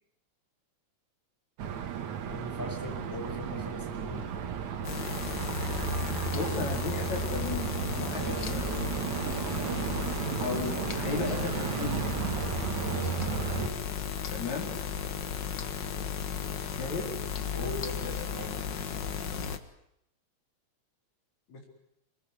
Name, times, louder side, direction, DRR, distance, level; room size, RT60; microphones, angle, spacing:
sound 1, 1.6-13.7, right 7 dB, 75° right, 3.0 m, -34 dB
voice 1, 2.3-4.3 8.1-8.5 12.8-13.2 13.5-13.8 17.5-18.6, left 1 dB, 5° left, 3 dB, 5.3 m, -40 dB
sound 2, 4.8-19.6, left 7 dB, 45° left, 1.7 m, -35 dB
voice 2, 6.3-7.7 8.0-8.8 10.4-12.1 14.3-14.7 16.8-17.2 21.5-21.6, left 4 dB, 70° left, 1 dB, 5.4 m, -35 dB
25.5 x 21.0 x 9.8 m, 0.78 s
omnidirectional pair, 3.3 m